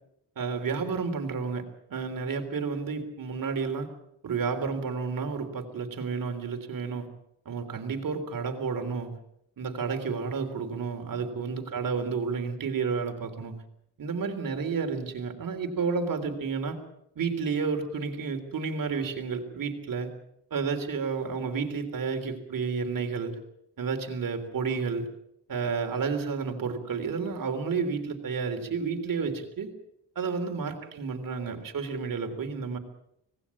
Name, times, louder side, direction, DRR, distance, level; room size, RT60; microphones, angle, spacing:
voice 1, 0.4-1.6 1.9-3.9 4.2-7.1 7.5-9.2 9.6-13.6 14.0-16.8 17.2-20.1 20.5-23.4 23.8-25.1 25.5-29.7 30.2-32.8, right 5 dB, 55° right, 6 dB, 3.6 m, -31 dB
26.0 x 19.0 x 7.2 m, 0.79 s
wide cardioid pair, 160°, 40 cm